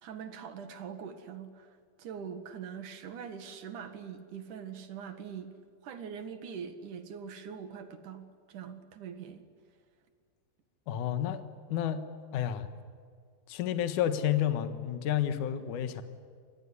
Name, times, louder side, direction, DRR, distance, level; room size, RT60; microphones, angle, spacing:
voice 1, 0.0-5.5 5.8-9.4, right 7 dB, 55° right, 8 dB, 2.8 m, -43 dB
voice 2, 10.9-11.4 11.7-12.1 12.3-12.7 13.5-16.0, left 10 dB, 60° left, 9 dB, 2.4 m, -30 dB
26.5 x 20.5 x 9.9 m, 2.1 s
omnidirectional pair, 5.0 m